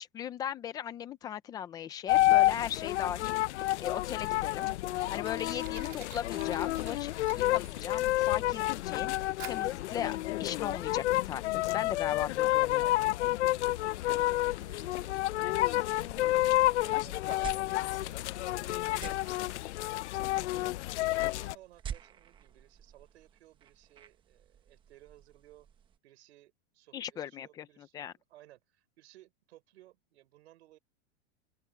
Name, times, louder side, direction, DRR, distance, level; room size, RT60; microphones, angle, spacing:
voice 1, 0.0-4.7 5.1-9.1 9.5-12.9 20.4-20.8 26.9-28.1, left 9 dB, 10° left, 0.4 m, -38 dB
sound 1, 2.1-21.6, left 16 dB, 85° left, 0.6 m, -30 dB
Fire, 4.4-21.8, right 24 dB, 50° right, 3.5 m, -56 dB
voice 2, 14.0-16.3 16.8-19.5 21.3-25.7 26.0-30.8, right 15 dB, 70° right, 5.5 m, -59 dB
sound 2, 15.9-26.0, right 8 dB, 15° right, 1.0 m, -49 dB
open air
supercardioid pair, 170°, 34 cm